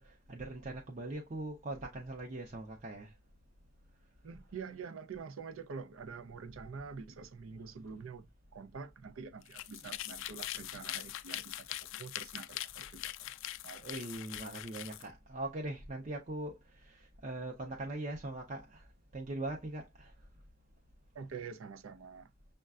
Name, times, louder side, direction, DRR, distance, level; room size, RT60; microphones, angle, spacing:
voice 1, 0.0-3.1 13.7-18.9 19.1-20.1, right 2 dB, 35° right, 0.6 m, -41 dB
voice 2, 4.2-13.3 13.6-13.8 21.1-22.3, right 5 dB, 80° right, 0.5 m, -46 dB
sound 1, 9.4-15.1, left 14 dB, 70° left, 0.3 m, -42 dB
6.4 x 2.2 x 2.3 m
head